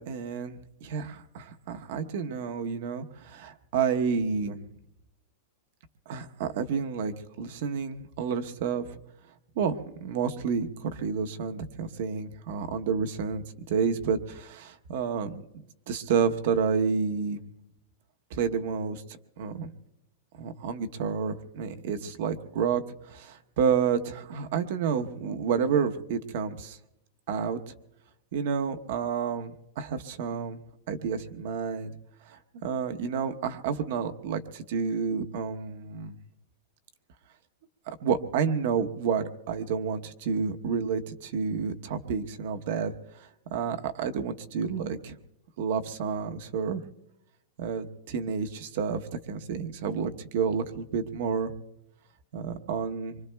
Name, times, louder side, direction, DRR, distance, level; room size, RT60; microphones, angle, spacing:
voice 1, 0.0-4.6 6.1-9.0 9.6-15.4 15.9-17.4 18.3-19.0 19.4-19.7 20.4-22.8 23.1-26.8 27.3-27.6 28.3-30.6 30.9-31.9 32.3-36.2 37.9-45.2 45.6-46.8 47.6-49.0 49.3-51.5 52.3-53.2, right 6 dB, 60° right, 7 dB, 0.9 m, -30 dB
26.0 x 24.0 x 2.3 m, 0.86 s
supercardioid pair, 160°, 0 cm